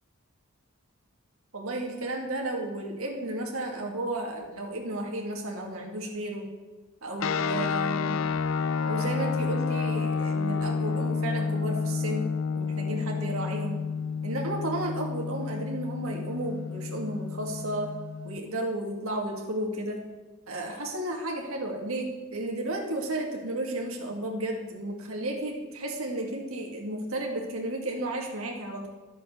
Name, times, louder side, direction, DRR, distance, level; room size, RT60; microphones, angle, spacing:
voice 1, 1.5-6.5 7.0-8.2 8.9-12.3 12.5-13.8 14.2-17.9 18.2-20.0 20.5-28.9, right 1 dB, 70° right, 1 dB, 2.3 m, -33 dB
sound 1, 7.2-18.4, left 5 dB, 65° left, 0.4 m, -30 dB
11.0 x 7.5 x 6.9 m, 1.3 s
head